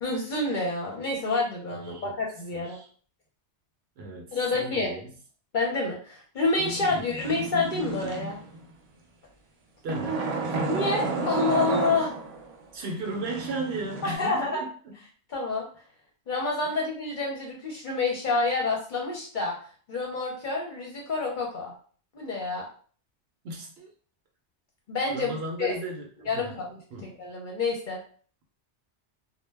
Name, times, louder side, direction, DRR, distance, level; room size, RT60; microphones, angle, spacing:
voice 1, 0.0-2.8 4.3-4.9 5.5-8.4 10.7-12.1 14.0-14.6 15.3-15.7 16.3-19.5 19.9-21.7 22.1-22.7 24.9-25.3 25.6-25.8 26.2-28.0, left 3 dB, 50° left, -1 dB, 0.7 m, -28 dB
voice 2, 2.5-2.9 4.0-5.1 6.9-7.3 9.8-10.6 12.7-15.0 16.6-16.8 23.4-23.9 25.1-26.1 26.3-26.5 26.9-27.2, right 2 dB, 65° right, 1 dB, 0.8 m, -36 dB
sound 1, 6.6-8.6 9.9-12.5 13.0-14.1, right 3 dB, 90° right, 0.3 m, -31 dB
2.1 x 2.1 x 3.3 m, 0.44 s
omnidirectional pair, 1.2 m